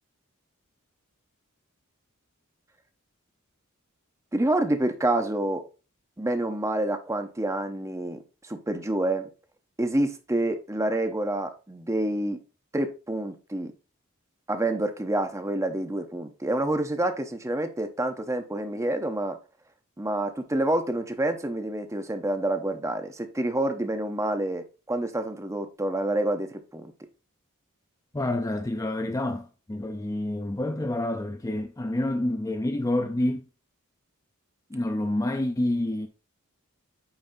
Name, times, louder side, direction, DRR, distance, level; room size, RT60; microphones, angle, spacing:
voice 1, 4.3-5.6 6.2-9.3 9.8-12.4 12.7-13.7 14.5-19.4 20.0-26.9, right 1 dB, 15° right, 0.8 m, -28 dB
voice 2, 28.1-33.5 34.7-36.1, left 1 dB, 15° left, 0.5 m, -28 dB
8.8 x 5.4 x 2.7 m
head